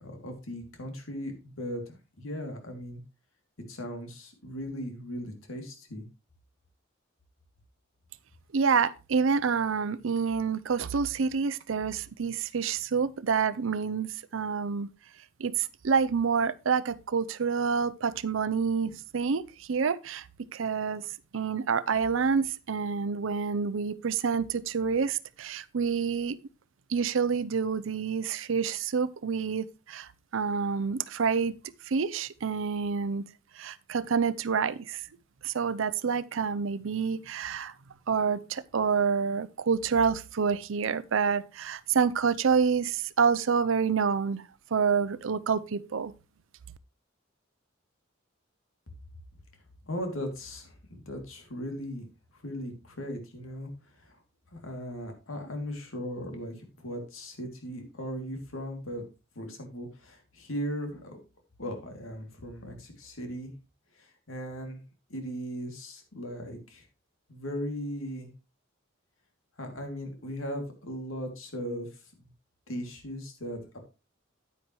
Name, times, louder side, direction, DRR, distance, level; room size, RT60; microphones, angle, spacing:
voice 1, 0.0-3.0 3.7-6.0 49.8-52.0 52.3-54.2 54.5-59.0 59.3-61.2 61.6-63.5 63.9-64.8 65.1-66.9 67.3-68.3 69.6-72.3 72.7-73.8, equal, 90° left, 2.7 m, -38 dB
voice 2, 8.5-14.9 15.4-20.3 20.5-21.0 21.3-26.4 26.9-31.5 31.9-33.2 33.6-35.0 35.4-37.7 38.1-44.4 44.7-46.1, right 6 dB, 75° right, 0.5 m, -28 dB
9.5 x 9.5 x 3.1 m
head